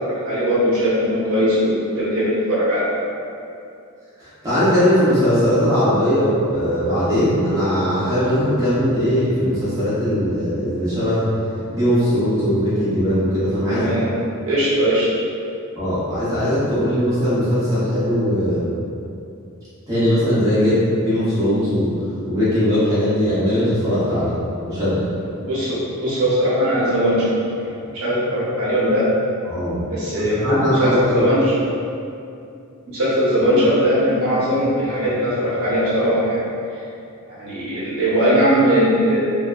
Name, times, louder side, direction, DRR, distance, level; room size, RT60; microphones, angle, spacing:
voice 1, 0.1-2.8 13.7-14.1 14.5-15.1 25.4-27.2 27.9-29.1 29.9-31.5 32.9-36.4 36.7-36.8 37.3-39.2, equal, 70° right, -9 dB, 0.8 m, -19 dB
voice 2, 4.2-11.3 11.7-13.9 15.8-18.6 19.9-21.9 22.2-24.3 24.6-25.1 29.5-29.8 30.2-31.2, equal, 15° right, -14 dB, 0.8 m, -19 dB
2.7 x 2.2 x 2.4 m, 2.6 s
head